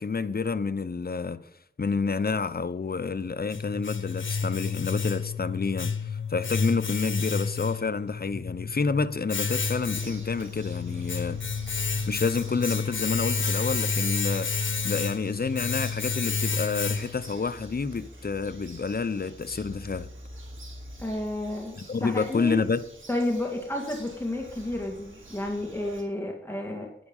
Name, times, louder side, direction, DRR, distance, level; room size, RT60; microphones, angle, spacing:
voice 1, 0.0-1.4 1.8-11.4 12.1-20.1 21.8-22.8, left 4 dB, 50° left, 0.8 m, -29 dB
Domestic sounds home sounds, 3.0-17.4, left 5 dB, 80° left, 1.1 m, -30 dB
Bird vocalization bird call bird song, 9.6-26.0, right 1 dB, 85° right, 3.5 m, -46 dB
voice 2, 21.0-22.6 23.1-26.9, left 1 dB, 10° left, 2.2 m, -31 dB
11.0 x 9.9 x 5.5 m
wide cardioid pair, 65°, 20 cm